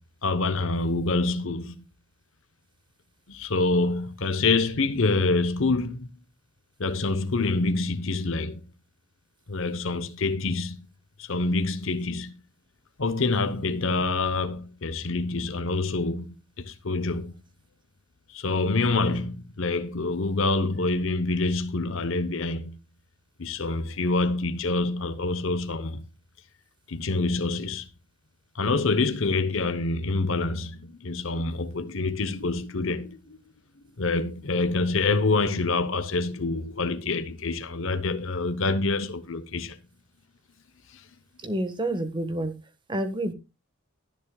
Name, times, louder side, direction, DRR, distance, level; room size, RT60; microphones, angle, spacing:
voice 1, 0.2-1.8 3.3-6.1 6.8-8.6 9.5-10.8 11.2-12.3 13.0-17.3 18.3-22.8 23.4-26.0 26.9-27.9 28.5-33.2 34.0-39.8, left 3 dB, 65° left, 0.9 m, -26 dB
voice 2, 41.4-42.5 42.9-43.3, right 1 dB, 20° right, 1.4 m, -28 dB
21.5 x 7.4 x 2.3 m
head